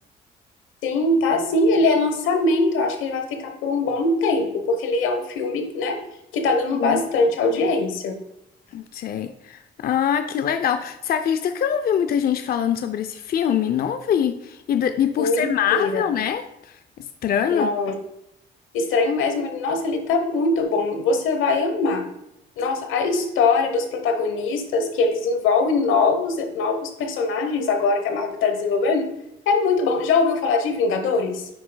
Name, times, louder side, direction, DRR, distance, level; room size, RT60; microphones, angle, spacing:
voice 1, 0.8-6.0 6.3-8.2 15.2-16.0 17.5-17.9 18.7-22.0 22.6-29.1 29.5-31.5, left 3 dB, 90° left, 6 dB, 1.0 m, -22 dB
voice 2, 8.7-17.7, left 9 dB, 50° left, 9 dB, 0.5 m, -24 dB
9.1 x 6.0 x 2.2 m, 0.79 s
cardioid pair, 90°, 20 cm